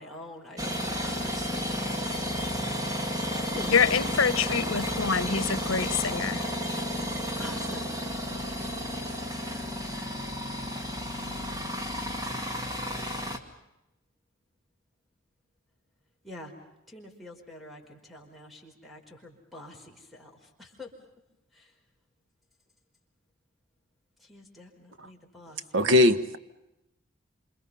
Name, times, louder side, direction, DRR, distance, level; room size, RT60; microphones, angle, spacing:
voice 1, 0.0-1.8 3.0-3.8 7.4-7.9 8.3-8.8 16.2-16.5 16.9-20.9 21.5-21.7 24.2-26.0, left 2 dB, ahead, 4.9 m, -46 dB
sound 1, 0.6-13.4, equal, 20° right, 2.3 m, -32 dB
voice 2, 3.7-6.4, left 6 dB, 85° left, 1.0 m, -26 dB
voice 3, 25.7-26.4, left 1 dB, 70° right, 1.4 m, -20 dB
28.0 x 27.5 x 5.7 m
head